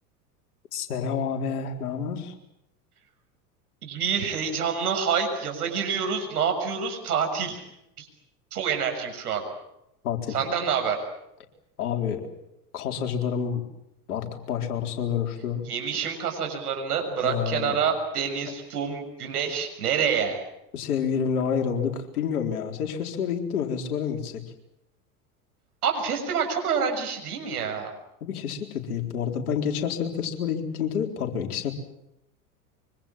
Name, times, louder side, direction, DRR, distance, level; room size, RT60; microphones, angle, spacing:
voice 1, 0.7-2.3 10.0-10.4 11.8-12.3 12.7-13.6 14.1-15.6 17.2-17.8 20.7-24.4 28.2-31.7, left 7 dB, 70° left, 3 dB, 4.2 m, -28 dB
voice 2, 3.8-7.6 8.0-8.1 8.5-9.4 10.3-11.0 15.7-20.4 25.8-27.9, right 6 dB, 75° right, 5 dB, 6.9 m, -27 dB
25.0 x 24.5 x 7.5 m, 0.84 s
hypercardioid pair, 85°, 46 cm